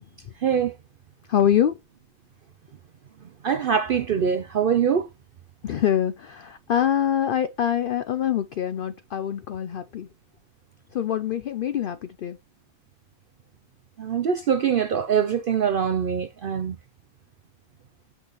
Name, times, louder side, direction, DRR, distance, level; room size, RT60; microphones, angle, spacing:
voice 1, 0.4-0.7 3.4-5.1 14.0-16.8, right 7 dB, 65° right, 0.5 m, -23 dB
voice 2, 1.3-1.8 5.6-10.1 10.9-12.4, left 10 dB, 75° left, 0.5 m, -24 dB
6.2 x 5.3 x 3.0 m
omnidirectional pair, 1.4 m